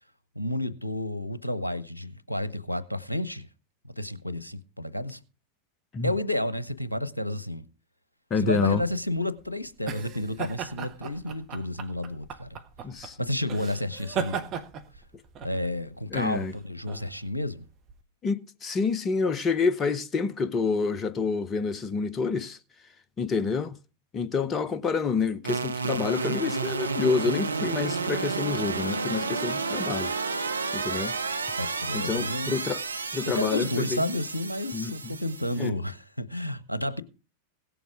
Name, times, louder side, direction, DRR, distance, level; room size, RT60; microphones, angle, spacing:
voice 1, 0.3-3.5 3.8-5.2 6.0-7.6 8.4-12.6 13.0-14.4 15.4-17.6 31.6-32.6 33.3-37.0, left 1 dB, 85° left, 0.8 m, -31 dB
voice 2, 8.3-8.8 12.8-13.2 16.1-16.5 18.2-22.6 23.2-23.7 24.1-30.1 30.7-31.1 31.9-32.8 33.1-34.0 34.7-34.9 35.6-35.7, left 5 dB, 25° left, 0.8 m, -28 dB
sound 1, 8.8-18.0, right 7 dB, 35° right, 1.3 m, -38 dB
sound 2, 25.4-35.7, right 4 dB, 75° right, 0.6 m, -31 dB
17.0 x 7.1 x 4.9 m
figure-of-eight pair, 90°, 0 cm